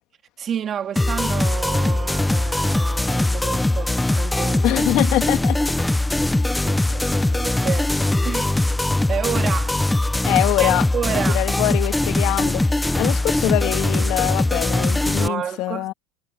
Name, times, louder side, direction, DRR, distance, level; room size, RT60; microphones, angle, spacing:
voice 1, 0.4-4.8 6.5-7.9 8.2-8.5 9.1-9.8 10.6-11.4 15.2-15.9, right 8 dB, 30° right, 2.2 m, -30 dB
sound 1, 1.0-15.3, left 2 dB, 5° left, 0.7 m, -21 dB
voice 2, 4.6-5.6 10.3-15.9, left 17 dB, 55° left, 2.2 m, -24 dB
supercardioid pair, 140°, 0 cm